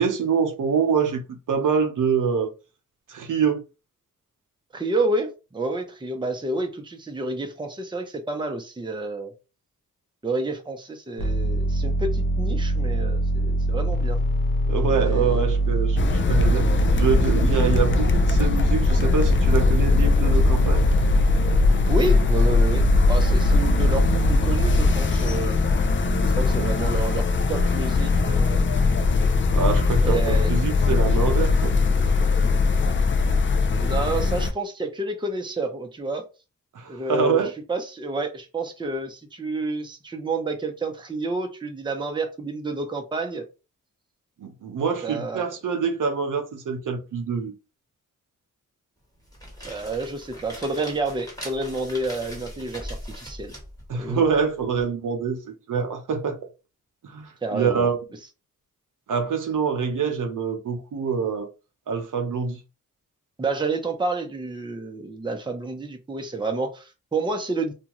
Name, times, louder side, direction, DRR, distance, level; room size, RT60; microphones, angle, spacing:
voice 1, 0.0-2.5 3.1-3.6 14.7-16.7 17.0-20.9 29.5-30.2 30.5-31.7 36.7-37.5 44.4-47.5 53.9-56.4 57.0-58.0 59.1-61.5 61.9-62.6, right 6 dB, 70° right, 0.7 m, -25 dB
voice 2, 4.7-9.3 10.2-14.2 15.0-15.4 21.9-25.6 26.4-28.7 30.0-30.5 33.7-36.2 36.9-43.4 45.0-45.5 49.7-53.5 54.0-54.2 57.4-57.9 63.4-67.7, right 2 dB, 15° right, 0.6 m, -29 dB
sound 1, 11.2-24.9, right 2 dB, 85° left, 0.8 m, -23 dB
sound 2, 16.0-34.5, left 4 dB, 35° left, 0.5 m, -21 dB
sound 3, 49.1-54.8, equal, 10° left, 1.3 m, -41 dB
2.6 x 2.3 x 3.0 m
cardioid pair, 65°, 33 cm